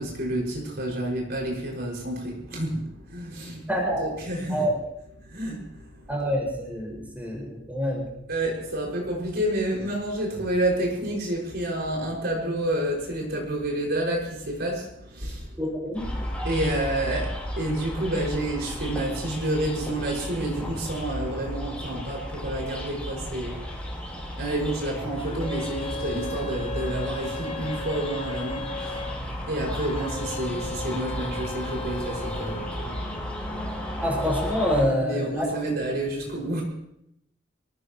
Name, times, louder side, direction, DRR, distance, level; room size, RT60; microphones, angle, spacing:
voice 1, 0.0-3.6 4.0-4.6 5.2-6.1 8.3-15.6 16.4-23.9 24.3-29.0 29.5-33.0 35.0-36.6, right 1 dB, 55° right, -1 dB, 5.8 m, -29 dB
voice 2, 3.7-4.1 4.5-4.7 6.1-8.1 15.6-16.1 34.0-35.6, equal, 10° right, -2 dB, 5.8 m, -26 dB
sound 1, 15.9-34.8, equal, 5° left, 4.4 m, -34 dB
sound 2, 25.2-29.2 29.7-32.8, left 2 dB, 30° left, 1.4 m, -36 dB
25.0 x 18.5 x 3.1 m, 0.77 s
head